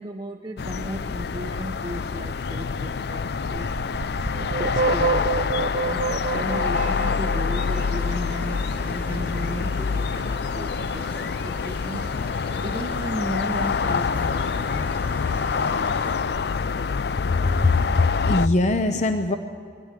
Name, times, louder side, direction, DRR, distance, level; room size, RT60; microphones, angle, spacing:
voice 1, 0.0-3.8 4.5-14.9, right 1 dB, 25° right, -1 dB, 0.9 m, -35 dB
sound 1, 0.6-18.5, left 5 dB, 60° left, 0.4 m, -26 dB
sound 2, 3.6-8.4, right 4 dB, 45° right, 0.6 m, -27 dB
sound 3, 6.0-16.2, equal, 10° left, 1.4 m, -44 dB
voice 2, 17.4-19.4, left 2 dB, 40° left, 7 dB, 0.8 m, -21 dB
21.0 x 13.0 x 9.9 m, 2.4 s
head